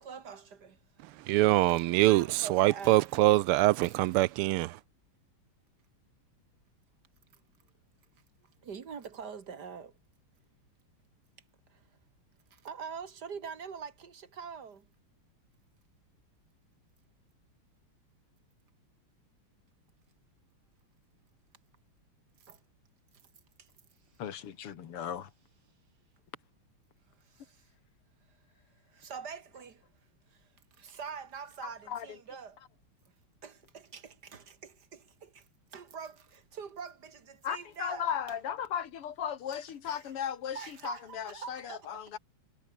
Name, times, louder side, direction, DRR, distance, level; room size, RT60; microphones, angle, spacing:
voice 1, 0.0-1.2 1.7-3.0 3.8-4.0 8.6-10.0 11.7-11.8 12.5-14.9 22.4-22.6 23.6-23.7 27.2-27.7 28.3-28.4 28.8-29.9 30.3-32.6 33.4-38.4 39.8-40.1 40.5-42.2, right 6 dB, 50° right, 2.2 m, -45 dB
voice 2, 1.3-4.8, right 17 dB, 85° right, 1.5 m, -24 dB
voice 3, 24.2-25.3 31.6-32.2 37.4-42.2, left 9 dB, 85° left, 2.6 m, -36 dB
omnidirectional pair, 2.4 m